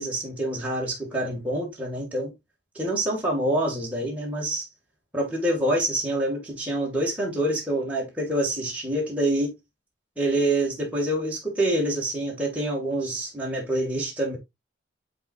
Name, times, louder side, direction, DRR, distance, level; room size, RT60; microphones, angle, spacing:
voice 1, 0.0-2.3 2.7-4.7 5.1-9.5 10.2-14.4, right 1 dB, 10° right, 2.3 m, -26 dB
9.9 x 4.4 x 2.6 m
head